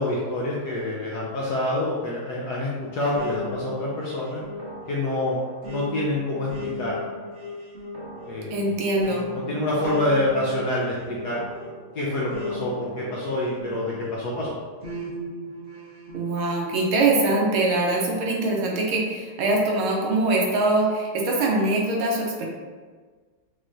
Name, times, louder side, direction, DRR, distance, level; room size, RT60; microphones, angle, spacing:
voice 1, 0.0-4.4 4.9-6.9 8.2-8.7 9.0-11.4 11.9-14.6, left 1 dB, 65° left, -5 dB, 1.0 m, -27 dB
sound 1, 3.1-14.2 14.8-16.4, left 1 dB, 45° right, 0.8 m, -36 dB
voice 2, 8.5-9.3 16.1-22.5, right 2 dB, 80° right, -1 dB, 1.6 m, -23 dB
6.5 x 2.9 x 2.5 m, 1.5 s
omnidirectional pair, 2.4 m